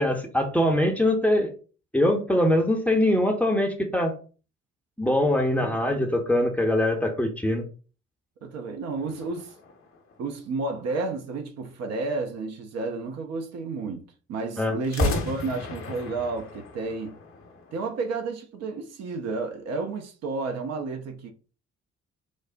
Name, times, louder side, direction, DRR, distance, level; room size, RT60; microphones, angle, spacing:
voice 1, 0.0-1.5 1.9-4.1 5.0-7.7 14.6-14.8, left 1 dB, 5° left, 0.6 m, -23 dB
voice 2, 5.6-6.1 8.4-9.5 10.2-14.0 14.3-17.2 17.7-21.3, right 3 dB, 45° right, 0.5 m, -31 dB
sound 1, 9.0-10.8 14.8-17.9, left 3 dB, 40° left, 0.7 m, -33 dB
3.0 x 2.0 x 2.5 m
figure-of-eight pair, 40°, 35 cm